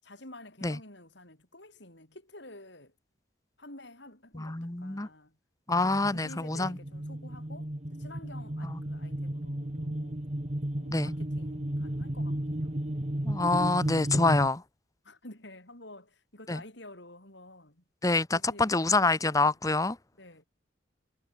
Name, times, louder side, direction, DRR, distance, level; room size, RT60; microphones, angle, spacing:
voice 1, 0.0-2.9 3.6-5.4 5.7-10.2 10.7-12.8 15.0-17.8 18.3-19.5 20.2-20.4, left 1 dB, 60° left, 6.8 m, -50 dB
voice 2, 4.3-5.1 5.7-6.8 8.6-8.8 10.9-11.1 13.2-14.6 16.5-16.6 18.0-20.0, left 3 dB, 15° left, 0.9 m, -26 dB
sound 1, 5.7-14.5, right 1 dB, 30° right, 1.6 m, -34 dB
head